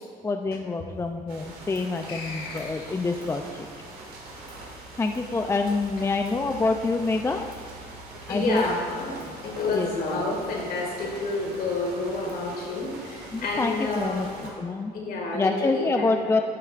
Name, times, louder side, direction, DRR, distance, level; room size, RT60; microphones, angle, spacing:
voice 1, 0.2-3.7 5.0-7.5 8.3-8.6 9.7-9.9 13.3-14.9 15.3-16.4, left 3 dB, 15° left, 5 dB, 0.4 m, -26 dB
sound 1, 1.3-14.5, right 2 dB, 60° right, 2.2 m, -43 dB
sound 2, 2.1-3.3, left 4 dB, 90° left, 1.7 m, -39 dB
voice 2, 8.3-14.3 14.9-16.2, left 2 dB, 65° left, 0 dB, 2.0 m, -29 dB
11.5 x 7.7 x 2.5 m, 2.2 s
cardioid pair, 110°, 17 cm